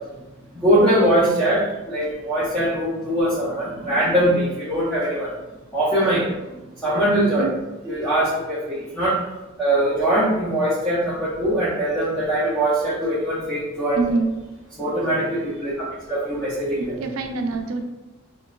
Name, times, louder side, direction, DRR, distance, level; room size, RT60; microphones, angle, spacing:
voice 1, 0.5-5.3 5.7-6.2 6.8-7.5 7.8-9.2 9.6-14.0 14.8-16.9, right 1 dB, 5° left, -10 dB, 0.5 m, -21 dB
voice 2, 14.0-14.3 16.8-17.8, right 3 dB, 70° right, 6 dB, 0.3 m, -25 dB
3.1 x 2.2 x 2.2 m, 1.1 s
head